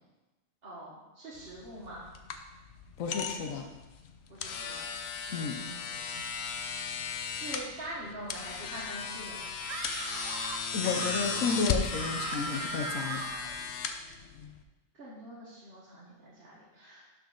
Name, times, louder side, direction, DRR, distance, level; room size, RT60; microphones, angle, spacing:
voice 1, 0.6-2.1 4.3-4.8 5.3-6.7 7.2-9.4 14.9-17.1, right 1 dB, 50° right, -7 dB, 1.5 m, -45 dB
sound 1, 1.4-14.6, left 6 dB, 60° left, 0.8 m, -36 dB
voice 2, 3.0-3.6 5.3-5.6 10.7-13.2, left 5 dB, 85° left, 3 dB, 1.2 m, -32 dB
Screaming, 9.6-13.6, right 6 dB, 80° right, 1.0 m, -39 dB
11.5 x 4.3 x 3.8 m, 1.1 s
omnidirectional pair, 1.3 m